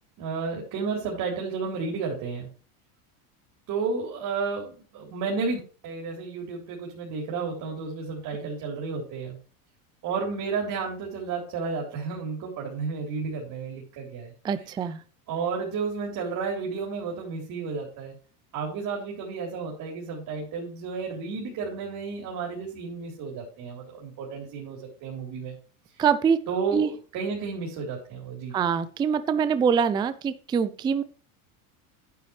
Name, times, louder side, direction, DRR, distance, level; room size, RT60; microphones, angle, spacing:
voice 1, 0.2-2.5 3.7-9.4 10.0-14.3 14.6-14.7 15.3-18.1 18.5-25.5 26.5-28.5, right 5 dB, 45° right, -1 dB, 3.8 m, -32 dB
voice 2, 14.4-15.0 26.0-26.4 26.7-26.9 28.5-31.0, right 7 dB, 10° right, 13 dB, 0.3 m, -24 dB
10.0 x 9.4 x 3.2 m, 0.40 s
supercardioid pair, 130°, 44 cm